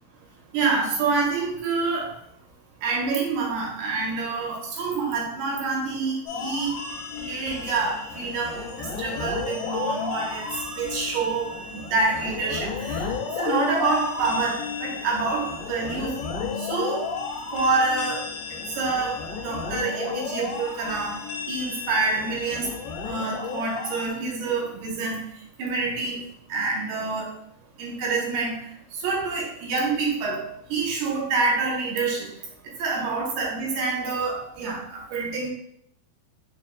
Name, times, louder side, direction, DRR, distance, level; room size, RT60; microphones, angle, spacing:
voice 1, 0.5-2.1 2.8-6.7 7.2-13.1 13.4-16.1 16.6-17.1 17.5-18.3 18.8-19.2 19.4-21.2 21.5-22.7 23.1-25.2 25.6-26.2 26.5-27.3 27.8-28.7 28.9-32.3 32.8-35.5, right 4 dB, 85° right, -2 dB, 2.8 m, -27 dB
sound 1, 6.3-24.1, left 5 dB, 80° left, 2.5 m, -33 dB
7.0 x 2.4 x 2.2 m, 0.71 s
omnidirectional pair, 4.5 m